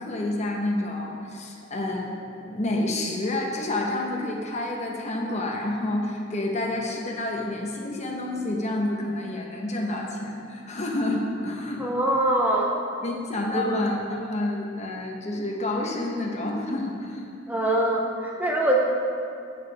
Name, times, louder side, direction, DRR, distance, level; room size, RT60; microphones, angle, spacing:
voice 1, 0.0-11.9 13.0-17.2, left 1 dB, 35° left, 0 dB, 1.1 m, -29 dB
voice 2, 11.8-12.7 13.5-13.7 17.5-18.8, right 1 dB, 10° right, -2 dB, 0.8 m, -23 dB
10.5 x 8.8 x 3.5 m, 2.5 s
head